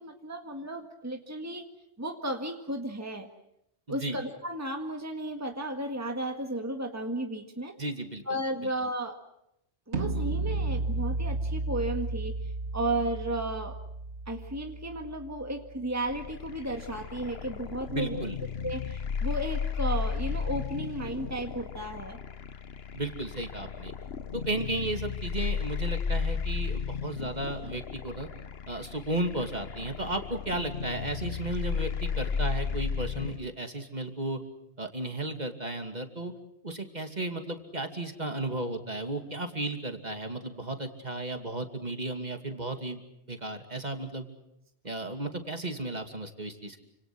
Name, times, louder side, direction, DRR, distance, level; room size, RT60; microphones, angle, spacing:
voice 1, 0.0-1.7 2.0-3.3 3.9-7.7 8.3-9.2 9.9-13.8 14.3-18.2 18.6-22.2, right 1 dB, 15° right, 4 dB, 1.8 m, -34 dB
voice 2, 7.8-8.2 17.9-18.4 22.9-23.9 24.3-28.3 28.7-34.4 34.8-36.3 36.6-43.0 43.3-44.3 44.8-46.8, right 2 dB, 40° right, 5 dB, 2.7 m, -34 dB
sound 1, 9.9-15.9, right 3 dB, 90° right, 1.8 m, -33 dB
sound 2, 16.1-33.4, left 6 dB, 65° left, 1.4 m, -34 dB
29.5 x 26.5 x 6.2 m, 0.81 s
omnidirectional pair, 1.1 m